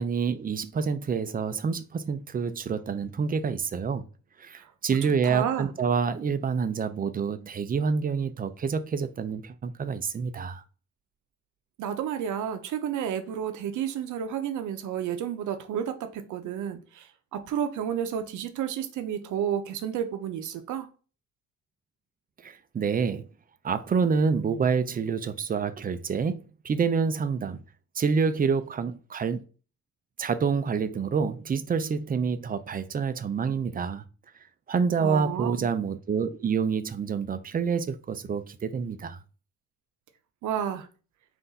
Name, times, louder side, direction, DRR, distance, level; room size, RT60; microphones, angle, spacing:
voice 1, 0.0-4.1 4.4-10.6 22.4-23.2 23.6-27.6 27.9-29.4 30.2-34.0 34.7-39.2, right 5 dB, 30° right, 0.5 m, -27 dB
voice 2, 5.2-5.7 11.8-20.9 35.0-35.7 40.4-40.9, right 9 dB, 75° right, 0.7 m, -31 dB
3.8 x 2.6 x 4.0 m
cardioid pair, 90°, 30 cm